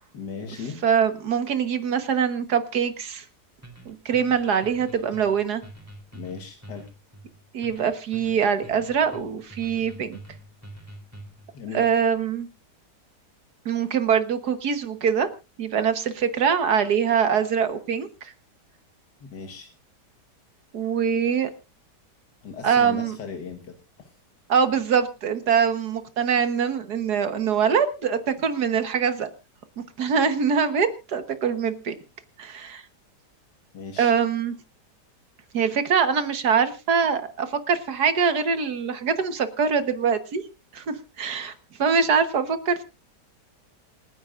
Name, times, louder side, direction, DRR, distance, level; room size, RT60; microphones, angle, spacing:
voice 1, 0.1-0.8 6.1-6.9 11.5-12.0 19.2-19.7 22.4-24.1 33.7-34.1, left 5 dB, 80° left, 4 dB, 2.1 m, -37 dB
voice 2, 0.8-3.2 3.9-5.6 7.5-10.2 11.7-12.5 13.7-15.3 15.6-18.3 20.7-21.5 22.6-23.2 24.5-29.3 30.0-32.0 32.4-32.8 34.0-34.5 35.5-40.4 40.7-41.5 41.8-42.8, right 7 dB, 70° right, 10 dB, 1.8 m, -23 dB
sound 1, 3.6-11.5, right 1 dB, 10° right, 3.5 m, -45 dB
27.5 x 10.0 x 2.5 m, 0.29 s
omnidirectional pair, 1.8 m